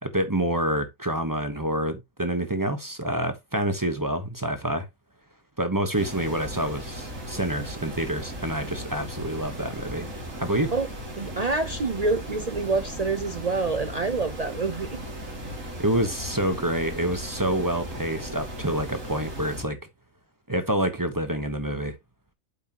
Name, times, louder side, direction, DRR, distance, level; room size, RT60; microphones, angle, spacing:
voice 1, 0.0-4.9 5.6-10.1 10.4-10.7 15.6-19.8 20.5-22.0, right 1 dB, 15° right, 0.9 m, -27 dB
sound 1, 5.9-19.6, equal, 75° right, 2.8 m, -37 dB
voice 2, 11.2-15.0, right 3 dB, 50° right, 0.5 m, -27 dB
8.1 x 6.1 x 2.9 m
omnidirectional pair, 1.4 m